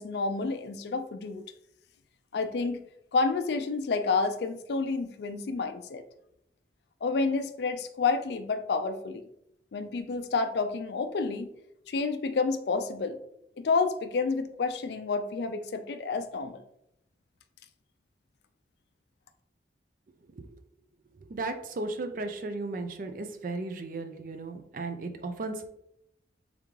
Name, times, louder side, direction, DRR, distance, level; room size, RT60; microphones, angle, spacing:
voice 1, 0.0-1.4 2.3-2.8 3.1-6.1 7.0-9.2 9.7-11.5 11.9-13.2 13.6-16.6, left 4 dB, 65° left, 9 dB, 0.4 m, -29 dB
voice 2, 21.3-25.7, right 3 dB, 45° right, 7 dB, 0.4 m, -35 dB
3.6 x 3.5 x 3.1 m, 0.78 s
head